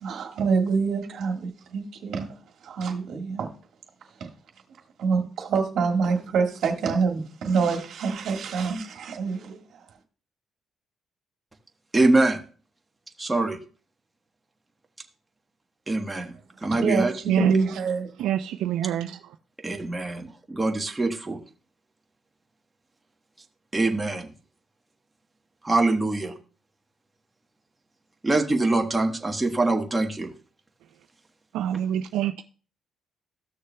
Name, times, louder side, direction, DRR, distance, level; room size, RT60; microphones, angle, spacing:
voice 1, 0.0-2.3 2.6-3.5 4.2-4.3 5.0-9.6 16.7-18.1, right 5 dB, 70° right, 1.6 m, -26 dB
voice 2, 11.9-12.4 13.2-13.6 15.9-16.3 16.6-17.1 19.6-21.4 23.7-24.3 25.6-26.3 28.2-30.3, right 2 dB, 15° right, 1.1 m, -24 dB
voice 3, 17.3-17.8 18.2-19.4 31.5-32.4, right 10 dB, 90° right, 0.3 m, -26 dB
13.5 x 6.5 x 2.2 m
cardioid pair, 90°, 0 cm